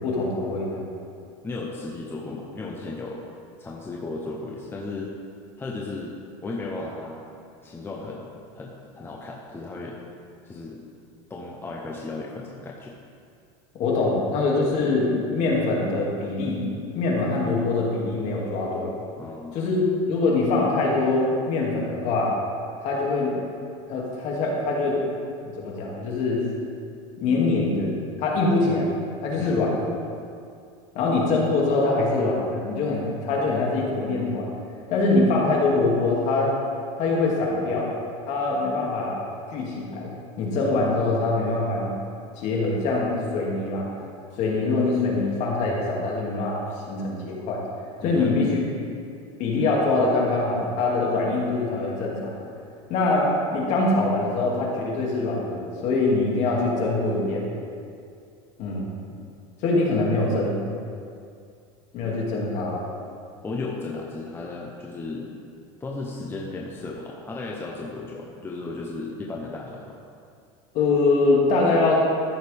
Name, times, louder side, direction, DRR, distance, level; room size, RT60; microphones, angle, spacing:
voice 1, 0.0-0.9 13.8-16.6 16.9-18.9 19.5-22.3 22.8-23.3 23.9-25.0 25.4-26.4 27.2-27.9 28.2-28.9 29.2-29.9 30.9-34.5 34.9-36.5 37.0-37.9 38.3-39.2 39.5-41.9 42.4-43.9 44.4-46.6 46.9-47.6 48.0-48.6 49.4-52.3 52.9-57.5 58.6-58.9 59.6-60.6 61.9-62.8 70.7-72.0, left 3 dB, 50° left, -3 dB, 2.4 m, -23 dB
voice 2, 1.4-3.2 3.6-5.1 5.6-6.1 6.4-7.3 7.6-10.0 10.4-10.8 11.3-13.0 19.2-19.6 29.4-29.6 48.0-48.5 63.4-65.3 65.8-70.0, left 3 dB, 15° left, -3 dB, 0.8 m, -35 dB
14.0 x 6.5 x 3.5 m, 2.4 s
supercardioid pair, 140°, 15 cm